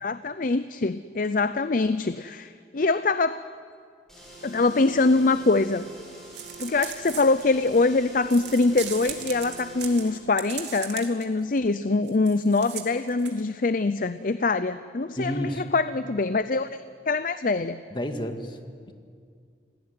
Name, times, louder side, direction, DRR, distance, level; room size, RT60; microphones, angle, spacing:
voice 1, 0.0-3.4 4.4-5.9 6.6-17.8, left 3 dB, 50° left, 13 dB, 0.6 m, -24 dB
sound 1, 4.1-10.3, right 2 dB, 5° left, 7.3 m, -45 dB
Peling Onions, 6.3-7.8 8.3-11.2 11.6-11.7 12.0-13.4, right 10 dB, 85° right, 2.7 m, -38 dB
voice 2, 15.2-15.6 17.9-18.6 18.9-19.0, equal, 25° left, 6 dB, 1.9 m, -30 dB
27.5 x 18.5 x 9.6 m, 2.2 s
head